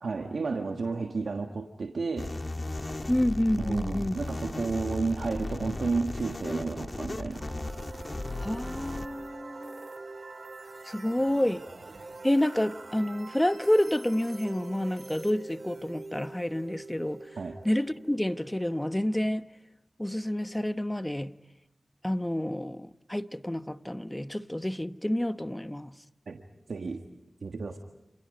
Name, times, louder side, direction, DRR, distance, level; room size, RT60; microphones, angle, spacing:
voice 1, 0.0-2.3 3.6-7.5 17.4-17.6 26.3-26.4 26.7-27.0 27.4-27.8, right 4 dB, 85° right, 1.4 m, -32 dB
sound 1, 2.2-9.1, left 2 dB, 40° left, 1.7 m, -36 dB
voice 2, 3.1-4.2 8.4-9.9 10.9-11.6 12.2-17.2 17.6-19.4 20.0-21.3 22.0-25.9, left 1 dB, 15° left, 1.1 m, -29 dB
sound 2, 7.4-19.2, right 3 dB, 60° right, 3.7 m, -45 dB
29.0 x 28.0 x 5.2 m
cardioid pair, 45°, 0 cm